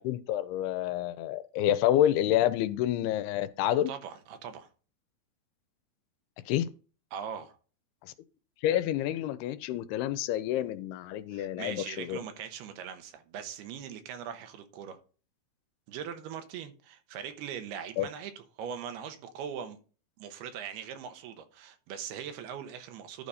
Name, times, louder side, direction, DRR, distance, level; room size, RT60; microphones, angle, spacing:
voice 1, 0.0-3.9 6.5-6.7 8.0-8.1 8.6-12.2 18.0-18.1, left 12 dB, 85° left, 2.6 m, -28 dB
voice 2, 3.7-4.7 7.1-7.6 11.3-15.0 15.9-19.8 20.2-23.3, right 8 dB, 85° right, 3.0 m, -41 dB
11.5 x 4.1 x 4.9 m
omnidirectional pair, 4.5 m